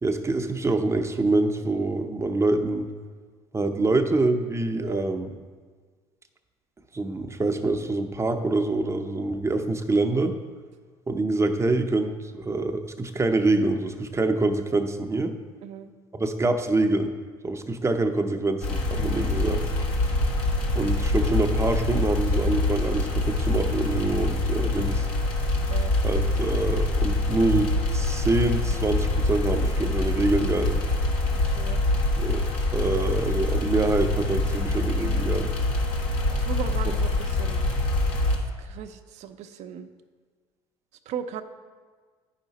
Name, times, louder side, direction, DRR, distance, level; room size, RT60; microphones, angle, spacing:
voice 1, 0.0-2.9 3.5-5.3 6.9-10.4 11.1-15.4 16.1-17.1 17.4-19.6 20.7-25.1 26.0-30.8 32.2-35.5, right 2 dB, 20° right, 6 dB, 0.7 m, -25 dB
voice 2, 15.6-15.9 25.7-25.9 31.4-31.8 36.3-37.6 38.6-39.9 41.1-41.4, right 8 dB, 60° right, 8 dB, 0.6 m, -37 dB
sound 1, 18.6-38.4, left 2 dB, 70° left, 1.5 m, -25 dB
9.8 x 5.8 x 4.1 m, 1.5 s
hypercardioid pair, 75°, 13 cm